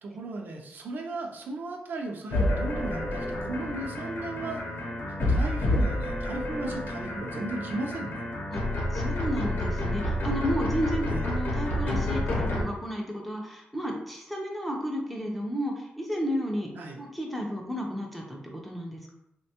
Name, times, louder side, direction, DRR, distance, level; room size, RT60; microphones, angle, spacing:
voice 1, 0.0-4.6 5.1-8.2 11.1-11.3 16.7-17.0, right 2 dB, 65° right, 2 dB, 0.4 m, -36 dB
sound 1, 2.3-12.6, left 1 dB, 65° left, 0.7 m, -29 dB
voice 2, 8.9-19.1, equal, ahead, 0 dB, 0.4 m, -32 dB
3.4 x 2.2 x 2.8 m, 0.81 s
wide cardioid pair, 170°, 4 cm